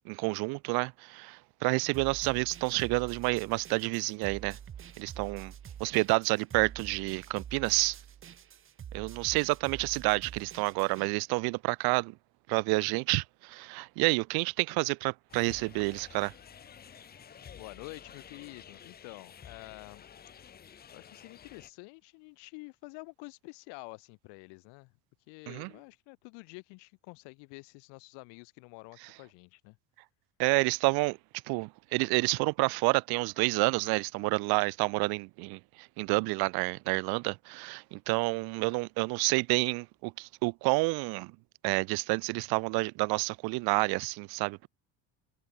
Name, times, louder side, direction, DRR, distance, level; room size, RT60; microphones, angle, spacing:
voice 1, 0.1-4.6 5.0-5.5 5.8-8.0 8.9-12.1 12.5-16.3 25.5-25.7 30.4-31.2 31.5-41.3 41.6-44.7, right 27 dB, 65° right, 0.5 m, -29 dB
sound 1, 1.9-11.1, right 9 dB, 30° right, 1.8 m, -47 dB
sound 2, 15.3-21.7, left 8 dB, 25° left, 0.8 m, -51 dB
voice 2, 17.6-20.0 20.9-24.9 25.3-29.8, left 31 dB, 80° left, 2.3 m, -48 dB
cardioid pair, 140°, 41 cm